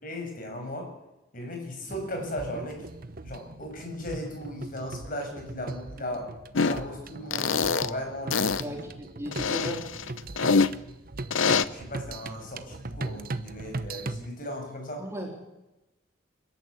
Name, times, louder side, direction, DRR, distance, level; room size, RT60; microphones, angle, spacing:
voice 1, 0.0-0.9 1.3-2.9 3.2-6.3 6.6-8.8 11.3-15.1, left 1 dB, 45° left, 3 dB, 6.7 m, -37 dB
sound 1, 1.9-14.3, right 2 dB, 45° right, 1.0 m, -39 dB
sound 2, 6.5-6.8 7.3-7.9 8.3-8.6 9.3-10.7 11.3-11.6, left 5 dB, 80° left, 0.9 m, -24 dB
voice 2, 8.6-9.9 15.0-15.3, equal, 15° right, 0 dB, 3.7 m, -36 dB
28.0 x 13.5 x 8.4 m, 0.99 s
head